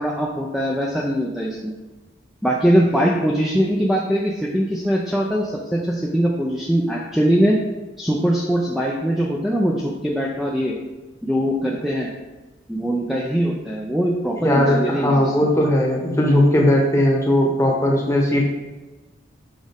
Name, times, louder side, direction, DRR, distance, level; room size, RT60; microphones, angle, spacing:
voice 1, 0.0-1.7 2.4-7.6 8.0-10.7 11.2-12.1 12.7-15.2, equal, ahead, -3 dB, 0.4 m, -21 dB
voice 2, 14.4-18.5, left 1 dB, 15° left, -1 dB, 1.0 m, -18 dB
6.3 x 5.0 x 3.5 m, 1.2 s
head